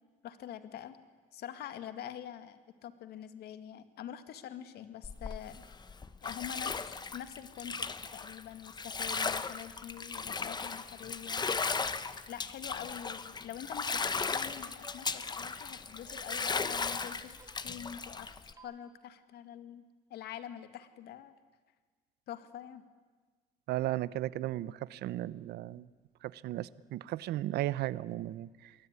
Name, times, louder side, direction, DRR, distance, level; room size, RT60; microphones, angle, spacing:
voice 1, 0.2-1.0 1.3-5.6 6.2-11.5 12.3-18.3 18.6-19.8 20.1-21.3 22.3-22.9, left 10 dB, 70° left, 10 dB, 2.1 m, -45 dB
Bathtub (filling or washing), 5.0-18.5, left 5 dB, 25° left, 1.1 m, -36 dB
sound 1, 13.3-17.7 18.1-18.7, right 3 dB, 20° right, 3.3 m, -57 dB
voice 2, 23.7-25.9 26.2-28.7, right 14 dB, 75° right, 18 dB, 0.8 m, -35 dB
28.0 x 21.5 x 9.7 m, 1.4 s
cardioid pair, 110°, 17 cm